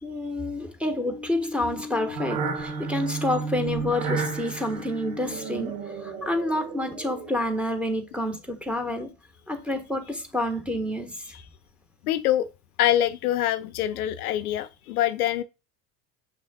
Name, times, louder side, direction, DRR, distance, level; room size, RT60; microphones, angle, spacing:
voice 1, 0.0-5.8 6.0-9.1 9.5-11.3, left 1 dB, ahead, 1.4 m, -28 dB
sound 1, 1.1-7.5, right 4 dB, 65° right, 1.8 m, -33 dB
voice 2, 12.0-12.5 12.8-15.4, left 12 dB, 70° left, 0.5 m, -25 dB
6.6 x 6.1 x 2.3 m
figure-of-eight pair, 70°, 46 cm